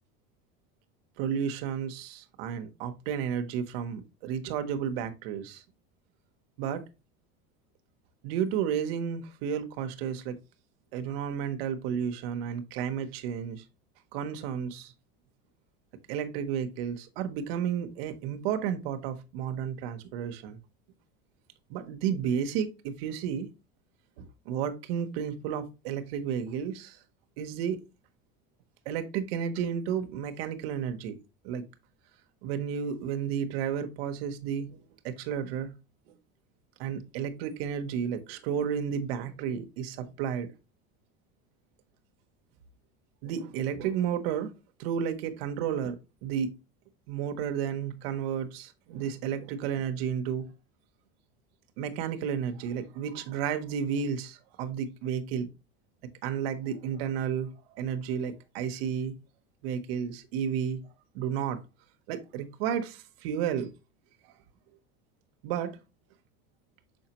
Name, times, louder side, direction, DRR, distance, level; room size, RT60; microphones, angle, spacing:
voice 1, 1.2-5.6 6.6-6.8 8.2-10.4 10.9-13.6 14.1-14.9 16.1-20.6 21.7-23.5 24.2-27.0 27.4-27.8 28.9-31.2 31.4-31.6 32.4-34.8 35.0-35.7 36.8-40.5 43.2-44.5 44.8-46.5 47.1-50.4 51.8-55.5 56.2-59.2 59.6-60.8 61.1-61.6 62.1-63.7 65.4-65.7, right 8 dB, 90° right, 1.0 m, -32 dB
6.3 x 5.1 x 2.9 m
cardioid pair, 135°, 29 cm